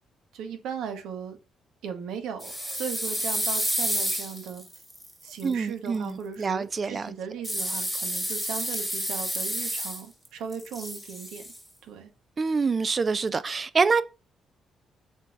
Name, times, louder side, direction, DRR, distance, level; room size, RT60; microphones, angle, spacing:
voice 1, 0.3-1.4 1.8-4.6 5.2-11.5 11.8-12.1, right 7 dB, 85° right, 1.0 m, -37 dB
sound 1, 2.4-5.4 7.4-10.3 10.5-11.6, equal, ahead, 1.5 m, -30 dB
voice 2, 5.4-7.1 12.4-14.0, right 4 dB, 35° right, 0.3 m, -26 dB
7.3 x 2.8 x 2.5 m
cardioid pair, 90°, 0 cm